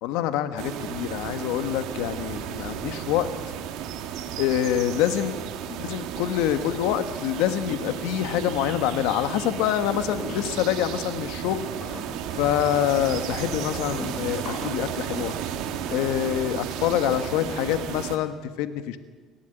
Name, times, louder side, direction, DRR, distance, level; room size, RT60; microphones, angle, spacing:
voice 1, 0.0-3.3 4.4-5.3 5.8-11.7 12.4-15.3 15.9-19.0, left 11 dB, 85° left, 10 dB, 1.3 m, -26 dB
sound 1, 0.6-18.2, right 9 dB, 70° right, 2.0 m, -33 dB
sound 2, 9.8-10.8 11.5-14.9, left 3 dB, 55° left, 6.0 m, -40 dB
30.0 x 12.0 x 9.0 m, 1.4 s
cardioid pair, 130°, 0 cm